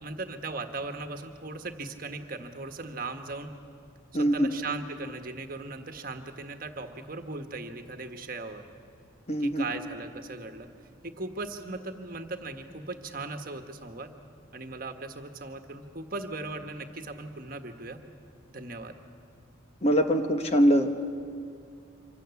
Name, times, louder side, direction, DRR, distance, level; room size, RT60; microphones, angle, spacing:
voice 1, 0.0-3.5 4.1-8.7 9.4-10.7 11.0-14.1 14.5-18.0 18.5-18.9, right 3 dB, 45° right, 6 dB, 1.4 m, -38 dB
voice 2, 4.1-4.5 9.3-9.6 19.8-21.0, equal, 30° left, 6 dB, 1.2 m, -23 dB
26.0 x 25.5 x 7.1 m, 2.4 s
head